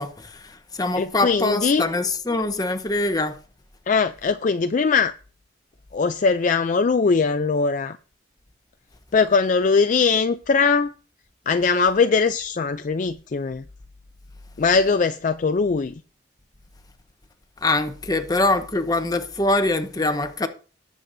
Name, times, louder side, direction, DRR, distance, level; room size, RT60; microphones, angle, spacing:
voice 1, 0.0-3.4 17.6-20.5, left 2 dB, 20° left, 0.9 m, -23 dB
voice 2, 1.0-1.8 3.9-5.1 5.9-8.0 9.1-10.9 11.5-13.7 14.6-16.0, left 4 dB, 40° left, 0.4 m, -21 dB
18.5 x 7.7 x 2.6 m
head